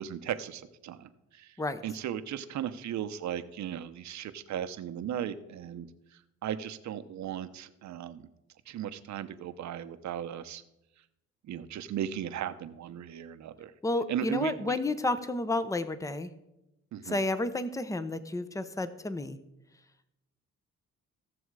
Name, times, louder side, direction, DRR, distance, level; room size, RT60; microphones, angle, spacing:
voice 1, 0.0-1.5 1.8-5.9 6.4-8.3 8.7-10.6 11.5-13.7 14.1-14.8 16.9-17.2, right 10 dB, 65° right, 11 dB, 0.9 m, -36 dB
voice 2, 13.8-16.3 17.0-19.4, left 2 dB, 10° left, 13 dB, 0.8 m, -31 dB
15.5 x 7.0 x 4.8 m, 0.91 s
cardioid pair, 90°, 30 cm